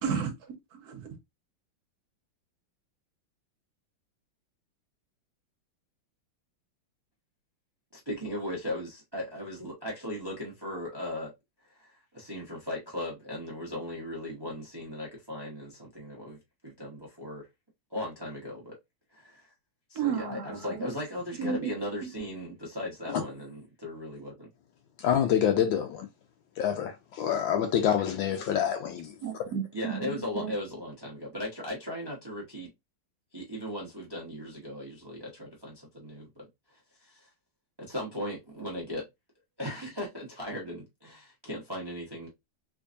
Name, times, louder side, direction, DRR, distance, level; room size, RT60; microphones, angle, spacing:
voice 1, 0.0-0.3 0.8-1.1 19.9-20.9 21.4-21.7 22.0-22.1 29.2-30.5, right 6 dB, 55° right, 1.3 m, -32 dB
voice 2, 7.9-11.3 11.7-16.4 16.6-17.5 17.9-18.8 19.1-19.5 19.9-24.5 29.7-32.7 33.3-37.3 37.8-39.1 39.6-42.3, left 1 dB, 20° right, 0.7 m, -37 dB
voice 3, 25.0-26.1 26.6-29.1, left 9 dB, 75° left, 1.3 m, -27 dB
3.4 x 3.1 x 2.5 m
omnidirectional pair, 2.2 m